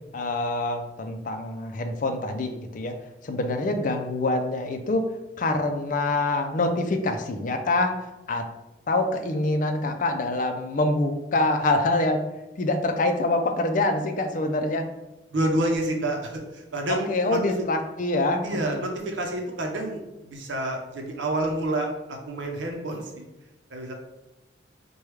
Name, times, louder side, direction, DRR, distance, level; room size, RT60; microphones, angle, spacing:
voice 1, 0.1-2.9 3.2-5.1 5.4-8.4 8.9-12.2 12.6-14.8 16.9-18.8, left 2 dB, 45° left, 6 dB, 0.4 m, -25 dB
voice 2, 15.3-17.4 18.4-23.2 23.7-23.9, right 1 dB, 85° right, 2 dB, 0.7 m, -28 dB
4.7 x 2.3 x 3.1 m, 0.98 s
head